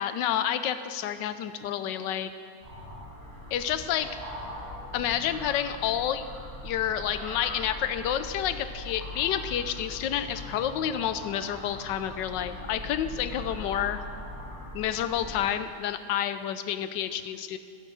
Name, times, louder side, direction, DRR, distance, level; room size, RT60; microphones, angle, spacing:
voice 1, 0.0-2.3 3.5-4.1 4.9-6.3 6.6-14.0 14.7-17.6, left 10 dB, 75° left, 11 dB, 1.1 m, -29 dB
sound 1, 2.6-15.4, left 1 dB, 25° right, 3.3 m, -41 dB
10.5 x 9.1 x 6.9 m, 2.4 s
omnidirectional pair, 2.3 m